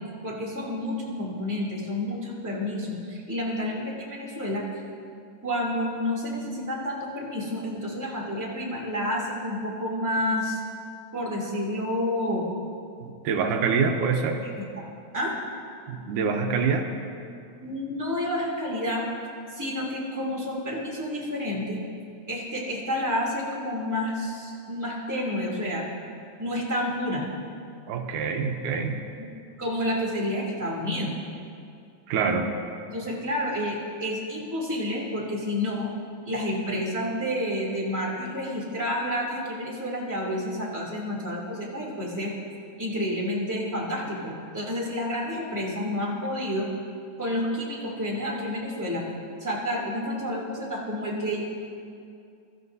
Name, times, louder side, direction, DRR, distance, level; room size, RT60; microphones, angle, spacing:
voice 1, 0.2-4.6 5.4-10.6 11.1-12.4 14.6-14.8 15.1-15.4 17.6-19.0 19.5-21.8 22.3-25.8 26.4-27.2 29.2-29.3 29.6-31.1 32.9-35.9 36.3-42.3 42.8-46.6 47.2-49.1 49.4-51.4, left 1 dB, 5° right, -5 dB, 2.5 m, -29 dB
voice 2, 13.0-14.4 15.9-16.9 27.9-29.0 32.1-32.5, right 5 dB, 85° right, 4 dB, 2.4 m, -25 dB
23.5 x 13.5 x 2.7 m, 2.5 s
omnidirectional pair, 3.5 m